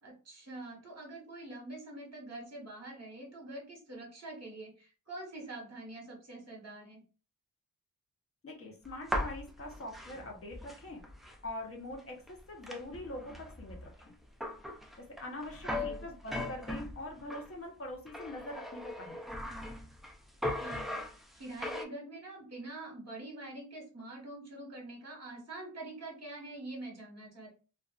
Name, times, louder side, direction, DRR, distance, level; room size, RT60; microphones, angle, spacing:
voice 1, 0.0-7.0 15.7-16.0 20.6-27.5, right 2 dB, 40° right, 0 dB, 1.2 m, -45 dB
voice 2, 8.4-11.0 11.4-14.1 15.2-19.2, left 1 dB, 35° left, 0 dB, 0.8 m, -43 dB
sound 1, 8.8-11.5 11.9-12.0 12.3-17.5 18.1-20.1 20.4-21.8, left 1 dB, ahead, 0.3 m, -39 dB
2.4 x 2.3 x 2.3 m, 0.35 s
cardioid pair, 85°, 41 cm